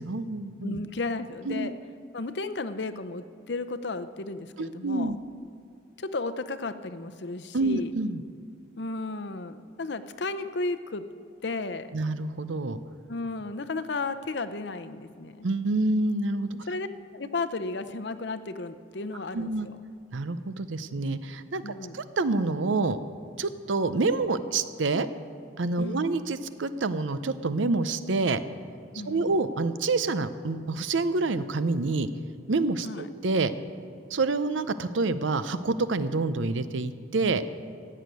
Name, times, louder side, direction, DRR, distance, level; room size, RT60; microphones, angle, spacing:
voice 1, 0.0-0.8 1.5-1.7 4.6-5.2 7.5-8.2 11.9-12.8 15.4-16.5 19.3-19.7 20.1-23.0 23.4-25.1 25.6-28.4 29.0-32.1 32.5-33.5 34.1-37.4, right 3 dB, 80° right, 13 dB, 0.7 m, -27 dB
voice 2, 0.6-1.7 2.1-5.1 6.0-7.9 8.8-11.0 11.4-11.9 13.1-15.5 16.7-16.9 17.1-19.8 21.6-22.0 25.8-26.1 28.9-29.3 32.8-33.1, left 3 dB, 65° left, 11 dB, 0.7 m, -34 dB
15.5 x 6.5 x 9.2 m, 2.5 s
head